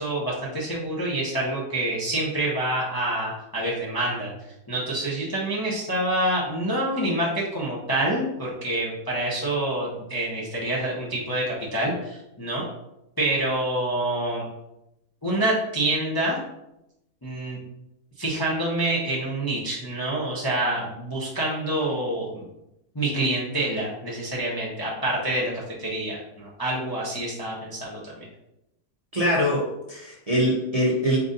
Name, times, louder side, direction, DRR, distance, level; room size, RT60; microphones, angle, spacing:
voice 1, 0.0-4.3 4.7-12.6 13.2-14.4 15.2-16.4 17.2-17.6 18.2-22.4 22.9-28.3, right 1 dB, 25° left, -5 dB, 0.5 m, -27 dB
voice 2, 29.1-31.2, equal, 35° right, -6 dB, 0.6 m, -23 dB
4.6 x 2.6 x 3.8 m, 0.86 s
omnidirectional pair, 1.7 m